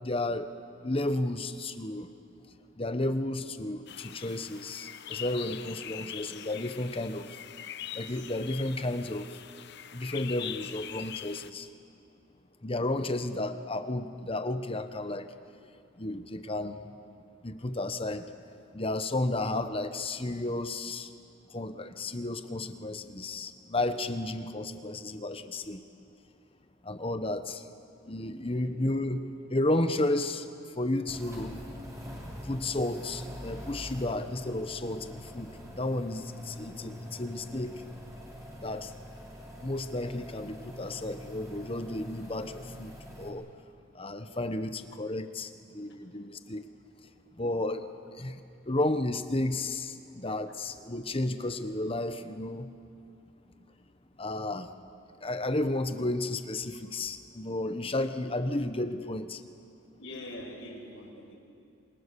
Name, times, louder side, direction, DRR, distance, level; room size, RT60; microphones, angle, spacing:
voice 1, 0.0-0.5 0.8-2.1 2.8-7.4 7.9-9.3 9.9-11.7 12.6-15.3 16.0-16.8 17.4-18.3 18.7-21.1 21.5-25.8 26.8-27.6 28.0-30.5 30.7-31.5 32.4-35.5 35.7-37.8 38.6-38.9 39.6-43.5 43.9-46.7 47.4-47.9 48.2-48.4 48.6-52.7 54.2-54.7 55.2-59.4, left 2 dB, 30° left, 9 dB, 1.1 m, -32 dB
sound 1, 3.9-11.5, left 10 dB, 55° left, 0.8 m, -43 dB
voice 2, 28.4-28.8 31.5-31.6 50.5-50.6 60.0-61.4, left 1 dB, 70° left, -3 dB, 6.0 m, -44 dB
sound 2, 31.1-43.3, equal, 15° right, 4.1 m, -44 dB
27.5 x 24.5 x 7.0 m, 2.4 s
head